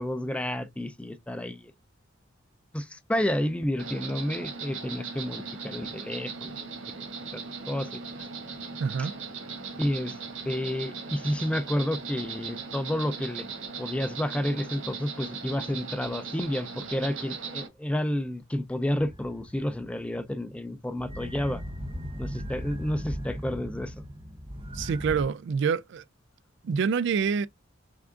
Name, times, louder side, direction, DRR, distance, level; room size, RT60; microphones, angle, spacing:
voice 1, 0.0-1.7 2.7-6.6 7.3-8.0 9.8-10.2 10.5-13.5 13.8-21.6 22.2-23.9, left 1 dB, 5° left, 0.4 m, -30 dB
Insect, 3.8-17.7, right 5 dB, 80° right, 1.2 m, -38 dB
voice 2, 8.8-9.1 24.7-26.0 26.6-27.5, right 6 dB, 65° right, 0.3 m, -26 dB
sound 1, 19.0-20.5 21.0-25.2, equal, 25° right, 0.8 m, -38 dB
3.6 x 3.4 x 3.6 m
head